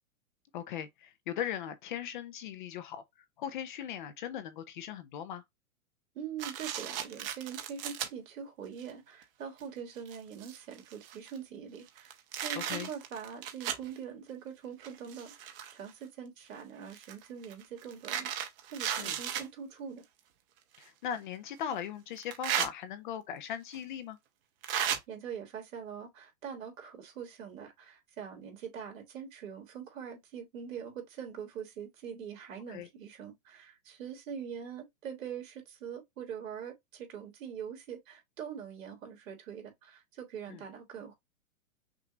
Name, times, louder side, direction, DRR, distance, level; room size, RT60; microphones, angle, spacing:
voice 1, 0.5-3.0 3.4-5.4 12.6-12.9 19.0-19.2 20.8-24.2 32.7-32.9 40.5-40.6, left 9 dB, 35° left, 0.6 m, -39 dB
voice 2, 6.1-18.3 18.7-20.0 25.1-41.1, right 7 dB, 65° right, 2.8 m, -43 dB
sound 1, 6.4-8.1 8.8-8.9 9.6-9.7 10.0-11.4 11.9-13.9 14.8-15.9 16.9-19.5 20.7-20.8 22.2-22.7 23.7-23.8 24.6-25.0, right 9 dB, 40° right, 1.0 m, -35 dB
6.0 x 2.6 x 3.0 m
hypercardioid pair, 155°, 42 cm